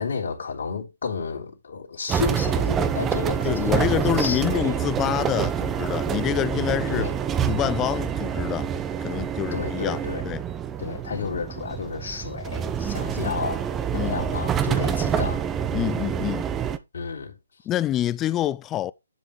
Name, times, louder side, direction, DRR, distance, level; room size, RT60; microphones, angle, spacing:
voice 1, 0.0-4.8 6.9-7.1 9.5-10.3 10.8-15.4 16.9-17.4, left 5 dB, 60° left, 3.3 m, -31 dB
sound 1, 2.1-16.8, right 8 dB, 15° right, 0.7 m, -27 dB
voice 2, 3.4-7.1 7.5-8.7 9.0-10.4 13.2-13.4 13.9-14.2 15.7-16.5 17.7-18.9, left 13 dB, 20° left, 0.4 m, -27 dB
10.5 x 5.6 x 3.1 m
figure-of-eight pair, 135°, 0 cm